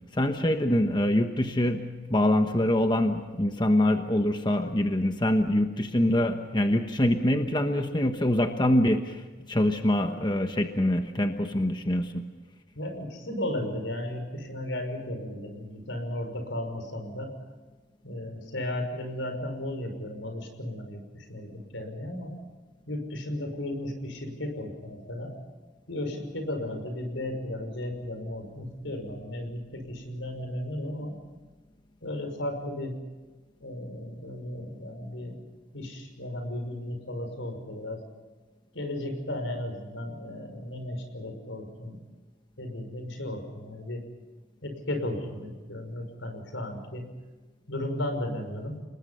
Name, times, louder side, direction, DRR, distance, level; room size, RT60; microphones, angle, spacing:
voice 1, 0.1-12.2, left 1 dB, 25° left, 6 dB, 1.2 m, -25 dB
voice 2, 12.8-17.4 18.0-22.3 22.9-25.3 25.9-31.2 32.0-33.0 33.6-35.4 35.7-38.0 38.7-42.0 42.6-44.0 44.6-47.1 47.7-48.8, left 1 dB, 85° left, 6 dB, 5.7 m, -35 dB
30.0 x 20.5 x 5.7 m, 1.3 s
head